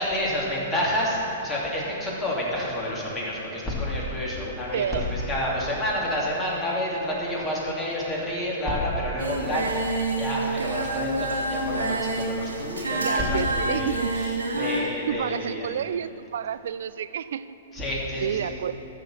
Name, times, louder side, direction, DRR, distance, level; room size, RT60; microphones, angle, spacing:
voice 1, 0.0-15.8 17.7-18.5, left 1 dB, 20° left, -5 dB, 2.9 m, -29 dB
voice 2, 4.7-5.1 13.0-14.1 15.1-17.8 18.2-18.7, right 9 dB, 65° right, 15 dB, 0.3 m, -30 dB
Singing, 9.2-14.8, right 2 dB, 85° right, 1.5 m, -28 dB
sound 1, 9.4-14.9, left 1 dB, 80° left, 2.5 m, -43 dB
14.0 x 5.0 x 7.4 m, 3.0 s
figure-of-eight pair, 110°, 0 cm